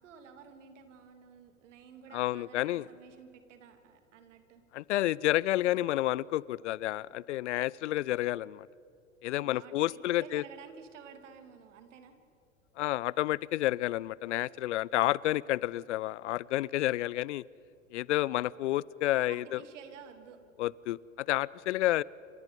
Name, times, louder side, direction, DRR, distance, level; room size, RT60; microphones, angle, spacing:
voice 1, 0.0-4.6 9.3-12.1 19.3-20.4, right 7 dB, 65° right, 7 dB, 3.1 m, -52 dB
voice 2, 2.1-2.9 4.7-8.7 9.2-10.4 12.8-17.4 17.9-19.6 20.6-22.0, left 15 dB, 60° left, 24 dB, 0.6 m, -30 dB
29.0 x 27.0 x 5.5 m, 2.6 s
figure-of-eight pair, 90°, 40 cm